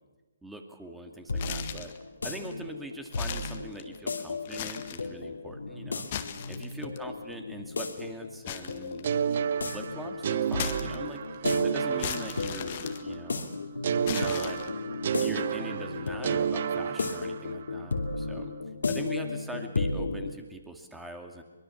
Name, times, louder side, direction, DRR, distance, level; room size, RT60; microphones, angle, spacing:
voice 1, 0.4-1.9 2.2-6.1 6.5-11.2 11.6-13.5 14.1-14.6 15.2-18.5 18.9-21.4, right 2 dB, 5° right, 4 dB, 2.4 m, -43 dB
sound 1, 0.9-20.3, left 3 dB, 75° left, 2.7 m, -35 dB
sound 2, 1.3-2.0 2.5-2.6 3.1-4.1 4.4-5.1 5.9-7.0 8.5-9.5 10.5-11.4 12.0-13.6 14.0-15.0, left 10 dB, 40° left, 1.8 m, -38 dB
sound 3, 9.0-13.0 13.8-17.7, right 8 dB, 50° right, 0.8 m, -30 dB
23.0 x 22.0 x 7.2 m, 1.2 s
figure-of-eight pair, 140°, 0 cm